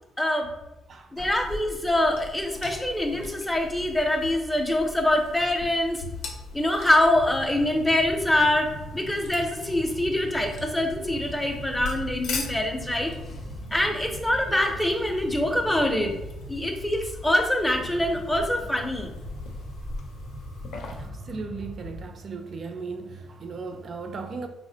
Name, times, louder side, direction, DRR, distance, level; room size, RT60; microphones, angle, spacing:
voice 1, 0.2-0.5 1.1-6.0 6.5-13.1 13.7-16.1 16.5-19.1, left 1 dB, 10° left, 0.5 m, -24 dB
voice 2, 0.9-1.3 20.8-24.5, right 4 dB, 50° right, 0.3 m, -37 dB
sound 1, 1.2-21.1, left 3 dB, 85° left, 0.5 m, -41 dB
sound 2, 7.1-22.1, equal, 75° right, 1.0 m, -41 dB
3.5 x 2.0 x 2.7 m
cardioid pair, 90°, 0 cm